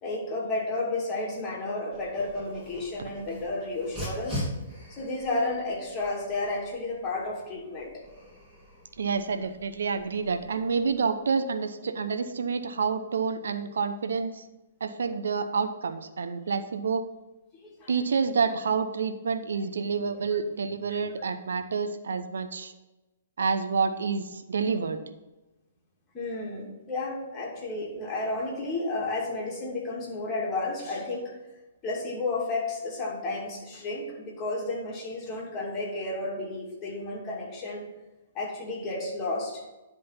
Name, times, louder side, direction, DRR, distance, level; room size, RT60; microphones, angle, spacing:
voice 1, 0.0-4.5 4.9-7.9 17.6-17.9 20.9-21.0 26.1-31.3 31.8-37.9 38.3-39.6, left 2 dB, 25° left, -3 dB, 2.5 m, -32 dB
Dog, 1.9-11.0, equal, 5° right, 3.2 m, -42 dB
voice 2, 9.0-14.4 14.8-17.0 17.9-22.7 23.4-25.0, right 5 dB, 70° right, 9 dB, 0.7 m, -28 dB
10.5 x 3.8 x 5.8 m, 1.1 s
figure-of-eight pair, 120°, 0 cm